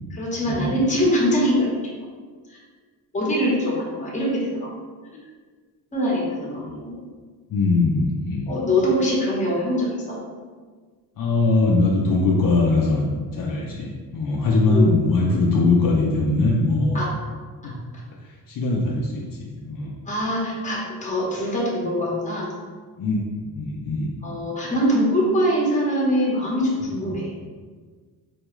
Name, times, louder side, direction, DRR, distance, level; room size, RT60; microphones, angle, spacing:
voice 1, 0.1-1.7 2.5-2.6 3.1-4.7 5.9-7.0 8.5-10.2 14.7-14.9 16.9-17.1 17.6-17.7 20.1-22.5 24.2-27.3, equal, 20° left, -4 dB, 1.0 m, -23 dB
voice 2, 7.5-8.5 11.2-17.0 17.6-17.8 18.2-19.9 23.0-24.1 27.0-27.1, left 3 dB, 55° left, -3 dB, 0.6 m, -21 dB
4.3 x 2.3 x 3.0 m, 1.5 s
cardioid pair, 120°, 39 cm